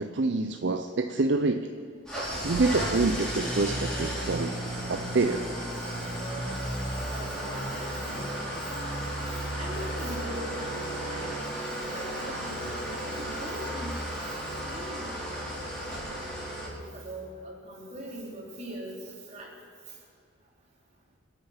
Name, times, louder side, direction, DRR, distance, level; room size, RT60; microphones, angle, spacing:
voice 1, 0.0-1.7 2.4-4.5 4.9-5.5, right 3 dB, 60° right, 7 dB, 0.6 m, -26 dB
Engine starting / Idling, 2.1-16.7, right 1 dB, 5° left, 4.7 m, -34 dB
voice 2, 5.0-5.3 7.1-8.8 9.3-11.3 11.8-12.7 13.0-14.4 14.7-15.5 16.6-19.5, right 1 dB, 35° right, -3 dB, 3.4 m, -42 dB
26.0 x 9.1 x 5.7 m, 2.3 s
head